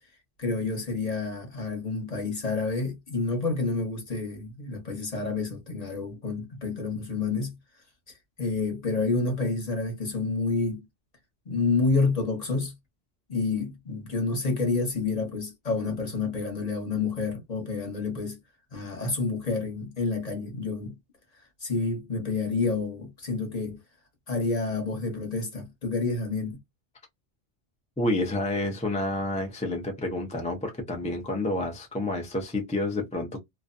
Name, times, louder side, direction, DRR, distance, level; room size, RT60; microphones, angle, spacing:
voice 1, 0.4-7.5 8.4-10.8 11.5-12.7 13.3-18.4 18.7-21.0 21.6-23.8 24.3-26.6, left 3 dB, 35° left, 1.0 m, -29 dB
voice 2, 28.0-33.4, left 2 dB, 10° left, 0.3 m, -29 dB
2.5 x 2.1 x 2.5 m
omnidirectional pair, 1.2 m